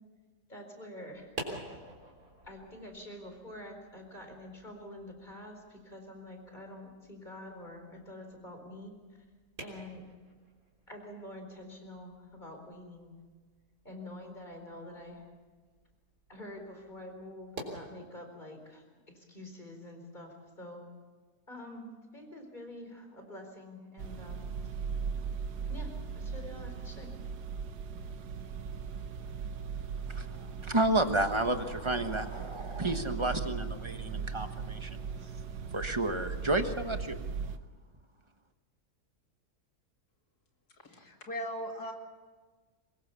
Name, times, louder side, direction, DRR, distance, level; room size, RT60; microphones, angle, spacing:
voice 1, 0.5-1.3 2.4-9.0 9.6-10.0 10.9-13.1 13.8-15.3 16.3-20.8 21.5-24.5 25.7-27.1, left 1 dB, 25° left, 4 dB, 4.5 m, -47 dB
sound 1, 1.1-17.8, right 2 dB, 60° right, 4.0 m, -50 dB
sound 2, 24.0-37.6, right 6 dB, 80° right, 1.5 m, -38 dB
voice 2, 30.1-35.3 35.7-37.2, right 2 dB, 20° right, 7 dB, 1.2 m, -31 dB
voice 3, 40.8-41.9, equal, 70° left, 3 dB, 3.1 m, -38 dB
23.0 x 21.0 x 7.0 m, 1.4 s
omnidirectional pair, 1.7 m